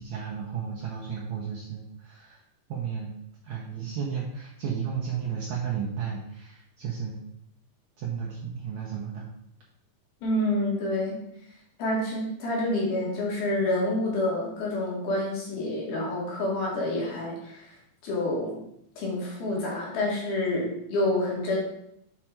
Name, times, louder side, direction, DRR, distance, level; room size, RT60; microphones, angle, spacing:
voice 1, 0.0-2.4 2.7-3.1 3.4-7.2 8.0-9.3, right 7 dB, 75° right, -3 dB, 1.7 m, -33 dB
voice 2, 10.2-11.2 11.8-17.7 18.0-18.6 19.0-21.6, left 1 dB, 75° left, -3 dB, 4.1 m, -28 dB
7.6 x 5.0 x 4.5 m, 0.75 s
omnidirectional pair, 4.4 m